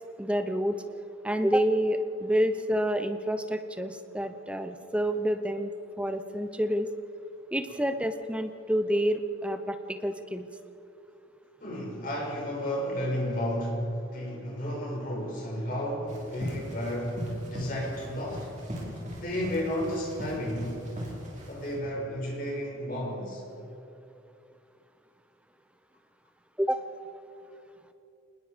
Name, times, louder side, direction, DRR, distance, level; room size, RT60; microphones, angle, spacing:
voice 1, 0.2-0.8 1.2-5.7 6.0-6.9 7.5-10.5 26.6-26.8, equal, 5° right, 8 dB, 0.8 m, -28 dB
voice 2, 11.6-18.5 19.2-20.8 21.5-23.4, equal, 45° left, -3 dB, 7.0 m, -32 dB
sound 1, 16.1-21.7, equal, 35° right, 5.1 m, -40 dB
26.5 x 20.5 x 5.2 m, 2.8 s
head